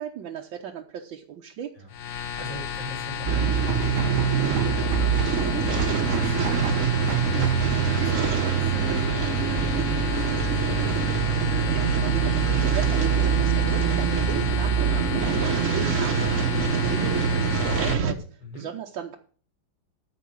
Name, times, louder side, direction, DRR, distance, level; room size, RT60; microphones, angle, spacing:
voice 1, 0.0-1.7 11.7-19.2, right 9 dB, 80° right, 1 dB, 1.6 m, -38 dB
voice 2, 1.8-11.2 18.4-18.7, equal, 75° left, -1 dB, 6.4 m, -42 dB
sound 1, 1.9-17.9, left 8 dB, 60° left, 1.3 m, -33 dB
sound 2, 3.3-18.1, right 7 dB, 50° right, 1.1 m, -24 dB
sound 3, 3.6-7.8, right 6 dB, 65° right, 1.4 m, -33 dB
12.5 x 4.8 x 8.5 m, 0.43 s
omnidirectional pair, 2.0 m